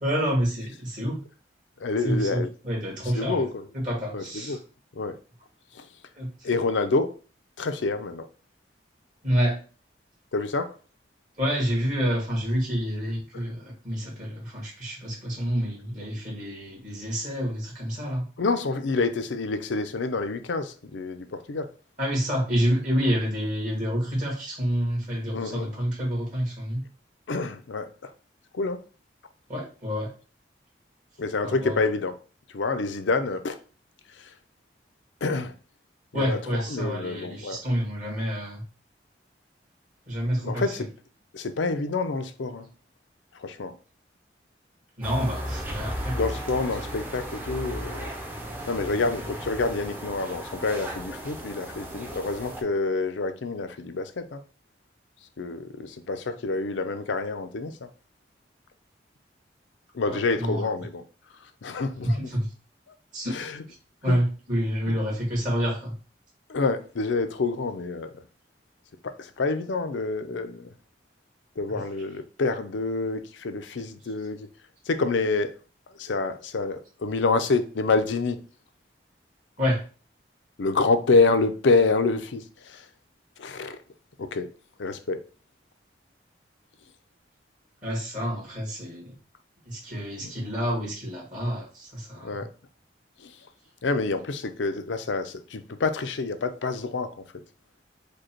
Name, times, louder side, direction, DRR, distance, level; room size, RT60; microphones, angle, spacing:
voice 1, 0.0-1.2 2.0-4.6 6.2-6.5 9.2-9.6 11.4-18.2 22.0-26.9 29.5-30.1 31.4-31.8 36.1-38.6 40.1-40.7 45.0-46.2 60.1-60.7 62.0-62.5 63.1-63.4 64.0-65.9 71.7-71.8 79.6-79.8 87.8-89.2 89.7-92.4, equal, 45° right, 1.7 m, -28 dB
voice 2, 1.8-2.5 3.1-3.6 4.1-4.6 4.9-5.2 5.7-5.9 6.4-7.2 7.6-8.3 10.3-10.8 13.3-13.4 18.4-21.7 25.3-25.7 27.3-28.1 28.5-28.8 31.2-32.1 32.5-33.6 34.2-34.3 35.2-35.5 36.1-37.6 40.4-40.9 41.3-42.7 43.3-43.7 46.1-48.1 48.7-54.4 55.4-57.9 59.9-61.0 61.6-62.2 62.9-63.0 63.3-63.6 64.1-64.2 64.9-65.0 66.5-68.1 69.0-70.7 71.6-74.5 74.9-75.6 76.0-78.4 80.6-82.9 83.4-83.8 84.2-84.5 84.8-85.2 90.2-90.3 92.2-92.5 93.2-93.3 93.8-97.2, left 3 dB, 85° left, 0.5 m, -27 dB
sound 1, 45.0-52.6, equal, 10° right, 0.6 m, -35 dB
5.1 x 2.2 x 4.4 m
head